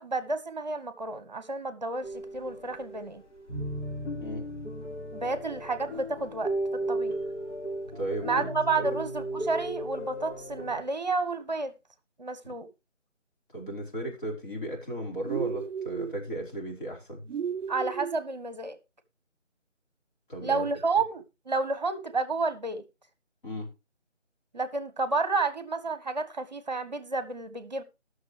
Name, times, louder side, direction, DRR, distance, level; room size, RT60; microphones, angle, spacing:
voice 1, 0.0-3.2 5.1-7.2 8.2-11.7 12.2-12.7 17.7-18.8 20.4-22.8 24.5-27.8, right 3 dB, 35° right, 1.2 m, -31 dB
sound 1, 2.0-3.1 3.4-10.8, right 1 dB, 65° left, 4.8 m, -35 dB
voice 2, 7.9-8.9 12.4-12.5 13.5-17.2 20.3-20.7 23.4-23.7, right 1 dB, 40° left, 4.9 m, -35 dB
sound 2, 15.2-16.2 17.3-18.2, right 7 dB, 75° right, 0.5 m, -33 dB
19.0 x 6.5 x 3.3 m
figure-of-eight pair, 175°, 37 cm